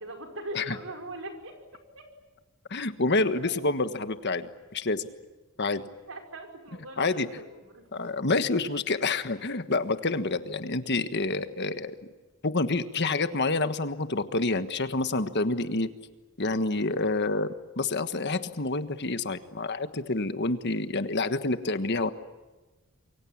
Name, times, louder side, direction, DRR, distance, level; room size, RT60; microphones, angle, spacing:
voice 1, 0.0-2.1 3.4-3.5 6.1-8.1, right 1 dB, 65° right, 4 dB, 5.3 m, -41 dB
voice 2, 2.7-5.1 5.6-5.8 7.0-7.3 7.9-11.9 12.4-15.9 16.4-22.1, left 3 dB, 50° left, 10 dB, 1.4 m, -28 dB
28.0 x 23.5 x 8.7 m, 1.2 s
head